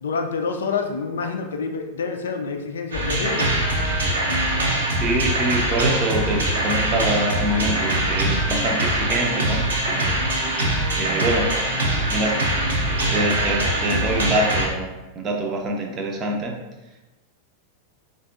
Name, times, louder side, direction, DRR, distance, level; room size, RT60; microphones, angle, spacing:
voice 1, 0.0-3.5, left 5 dB, 65° left, 5 dB, 0.4 m, -27 dB
sound 1, 2.9-14.7, right 1 dB, 70° right, 0.7 m, -23 dB
voice 2, 4.9-10.1 10.9-11.5 12.1-12.3 13.1-16.6, right 1 dB, 30° right, 1 dB, 0.6 m, -25 dB
4.2 x 2.5 x 2.3 m, 1.1 s
figure-of-eight pair, 90°, 0 cm